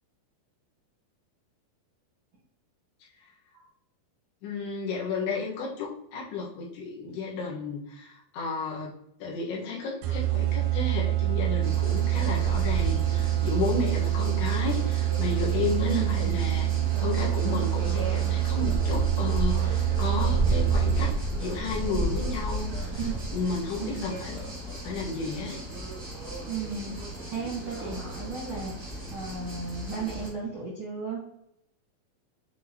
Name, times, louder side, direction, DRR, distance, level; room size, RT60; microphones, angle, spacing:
voice 1, 4.4-8.9 9.2-16.7 17.0-23.0 23.3-24.4 24.7-25.6, left 4 dB, 80° left, -4 dB, 3.5 m, -33 dB
sound 1, 10.0-21.4, right 15 dB, 80° right, 2.0 m, -26 dB
sound 2, 11.6-30.3, equal, 20° right, 0.5 m, -33 dB
voice 2, 15.9-16.4 23.0-23.1 23.8-24.1 26.4-27.0 27.3-31.2, right 5 dB, 60° right, -4 dB, 1.3 m, -34 dB
8.4 x 4.1 x 2.9 m, 0.78 s
omnidirectional pair, 4.5 m